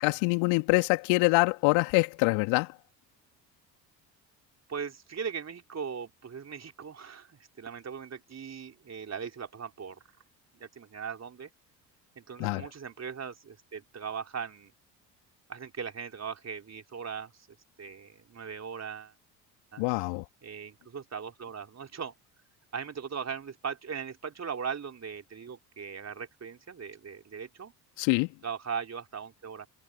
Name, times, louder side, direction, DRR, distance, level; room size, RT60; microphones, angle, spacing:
voice 1, 0.0-2.7 12.4-12.6 19.8-20.2 28.0-28.3, left 28 dB, 65° left, 2.5 m, -25 dB
voice 2, 4.7-10.0 10.5-11.5 12.2-14.7 15.5-17.5 17.8-19.1 19.7-20.0 20.4-22.1 22.7-27.7 28.4-29.7, right 6 dB, 30° right, 3.8 m, -39 dB
figure-of-eight pair, 55°, 50 cm